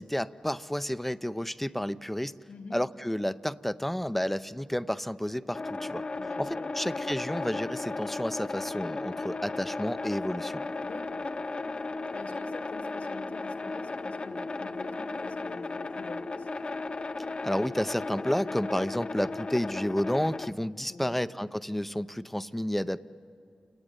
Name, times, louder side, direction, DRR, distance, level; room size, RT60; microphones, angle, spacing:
voice 1, 0.0-2.3 2.7-6.1 6.4-10.6 17.4-23.0, equal, 5° left, 13 dB, 0.7 m, -31 dB
sound 1, 5.5-20.5, left 3 dB, 45° left, 0.7 m, -35 dB
voice 2, 6.2-6.7 10.8-11.3 12.1-16.5 20.9-21.2, left 3 dB, 85° left, 4 dB, 2.2 m, -46 dB
29.0 x 18.0 x 9.9 m, 2.4 s
cardioid pair, 40°, 2 cm